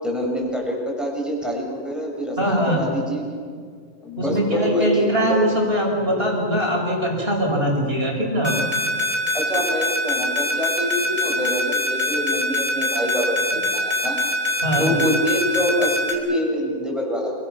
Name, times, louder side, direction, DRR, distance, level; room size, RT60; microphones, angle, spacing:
voice 1, 0.0-3.5 4.0-5.4 9.3-13.4 13.7-14.2 14.8-17.3, equal, ahead, -2 dB, 7.1 m, -25 dB
voice 2, 2.4-2.8 4.2-8.5 14.6-14.9, equal, 40° right, -1 dB, 7.0 m, -21 dB
sound 1, 8.4-16.1, left 3 dB, 60° right, 5.4 m, -23 dB
29.0 x 25.0 x 7.1 m, 2.1 s
omnidirectional pair, 1.6 m